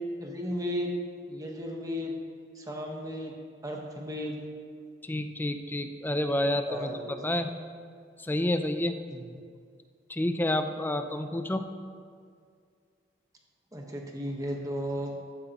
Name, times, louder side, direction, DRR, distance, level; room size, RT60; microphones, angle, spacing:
voice 1, 0.2-0.9 1.3-2.2 2.6-3.3 3.6-4.4 6.6-7.3 9.1-9.3 13.7-15.1, equal, 20° right, 0 dB, 1.3 m, -35 dB
voice 2, 5.0-7.5 8.2-9.0 10.1-11.6, left 1 dB, 10° left, 7 dB, 0.5 m, -29 dB
14.5 x 9.5 x 3.0 m, 2.1 s
head